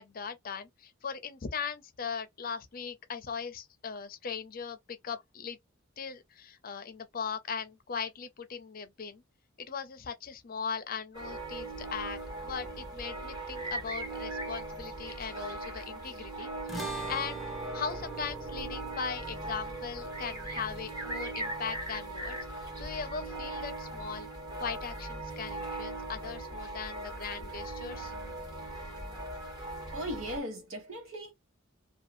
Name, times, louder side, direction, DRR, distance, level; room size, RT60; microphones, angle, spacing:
voice 1, 0.0-5.6 6.0-9.2 9.6-17.4 17.7-24.3 24.6-28.1, left 6 dB, 45° left, 0.5 m, -39 dB
sound 1, 11.1-30.4, right 2 dB, 20° right, 1.3 m, -39 dB
sound 2, 16.7-23.2, right 3 dB, ahead, 0.7 m, -43 dB
voice 2, 29.9-31.3, equal, 75° right, 1.2 m, -38 dB
2.7 x 2.3 x 2.5 m
head